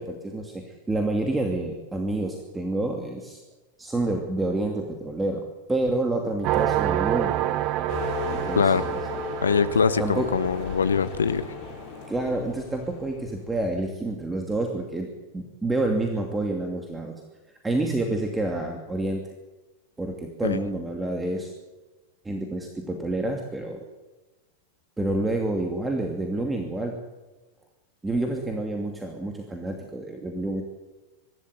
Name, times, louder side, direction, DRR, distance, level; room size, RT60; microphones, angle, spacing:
voice 1, 0.0-3.4 3.8-7.4 8.3-8.7 10.0-10.3 12.1-15.1 15.3-17.1 17.6-19.3 20.0-21.5 22.2-23.8 25.0-27.0 28.0-30.6, right 2 dB, 10° right, 2 dB, 2.6 m, -28 dB
sound 1, 6.4-11.8, right 13 dB, 40° right, 0.9 m, -28 dB
sound 2, 7.9-13.5, left 9 dB, 45° left, 4.2 m, -36 dB
voice 2, 8.6-8.9 9.4-11.4 20.4-20.6, left 6 dB, 70° left, 13 dB, 1.1 m, -23 dB
24.0 x 12.5 x 9.5 m, 1.2 s
figure-of-eight pair, 90°, 0 cm